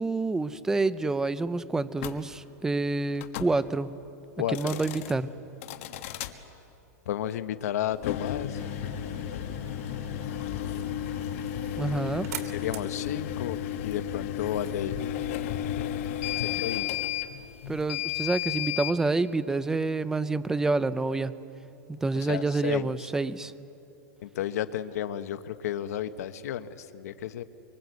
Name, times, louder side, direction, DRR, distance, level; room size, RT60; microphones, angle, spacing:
voice 1, 0.0-3.9 4.5-5.3 11.8-12.3 17.7-21.3 21.9-23.5, right 3 dB, 5° right, 15 dB, 0.6 m, -28 dB
sound 1, 2.0-2.2 3.2-3.5 4.4-5.1 5.6-6.3 7.9-19.0, left 11 dB, 55° left, 1.5 m, -33 dB
voice 2, 4.4-4.8 7.0-8.6 12.3-15.1 16.4-17.0 22.1-23.1 24.2-27.4, left 11 dB, 70° left, 10 dB, 1.2 m, -33 dB
sound 2, 8.5-14.9, right 9 dB, 75° right, 2.5 m, -47 dB
25.5 x 24.5 x 8.1 m, 3.0 s
supercardioid pair, 155°, 9 cm